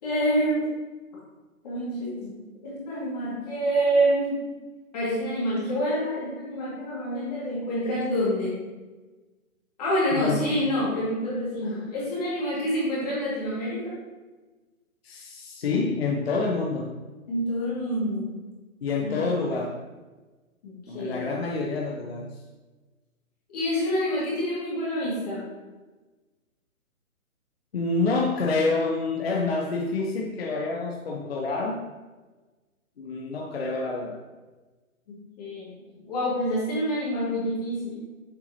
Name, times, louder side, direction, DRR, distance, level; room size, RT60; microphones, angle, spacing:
voice 1, 0.0-0.7 1.6-4.4 4.9-8.6 9.8-13.9 17.3-18.3 19.0-19.3 20.6-21.2 23.5-25.4 35.1-35.7 36.0-38.0, equal, 30° left, -7 dB, 2.1 m, -27 dB
voice 2, 10.1-10.6 11.6-11.8 15.0-16.9 18.8-19.7 20.9-22.3 27.7-31.8 33.0-34.2, left 3 dB, 45° left, 0 dB, 0.7 m, -27 dB
7.0 x 5.7 x 2.8 m, 1.2 s
hypercardioid pair, 165°, 42 cm